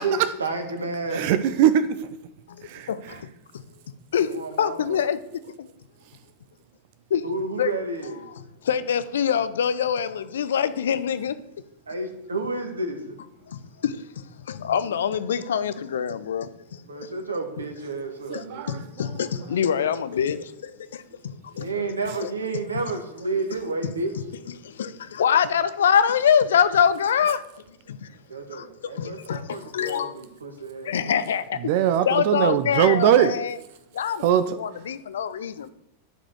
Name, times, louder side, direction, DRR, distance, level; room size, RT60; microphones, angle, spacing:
voice 1, 0.0-1.4 4.3-5.0 7.2-8.3 11.9-13.1 16.9-18.8 21.5-24.1 27.9-28.0 28.3-31.1, right 3 dB, 75° right, 1.7 m, -31 dB
voice 2, 1.1-2.1 2.6-3.2 18.3-18.8 31.6-33.3 34.2-34.6, right 10 dB, 50° right, 0.6 m, -21 dB
voice 3, 2.5-3.3 3.5-3.6 4.1-5.2 5.6-5.7 7.1-7.2 7.6-7.7 8.6-11.4 13.5-16.8 18.3-21.7 22.2-22.3 23.8-23.9 24.6-27.4 27.9-28.1 28.5-30.1 30.8-31.6 32.0-33.6 33.9-34.3 34.6-35.7, left 8 dB, 65° left, 0.6 m, -25 dB
10.5 x 5.0 x 7.9 m
figure-of-eight pair, 90°, 0 cm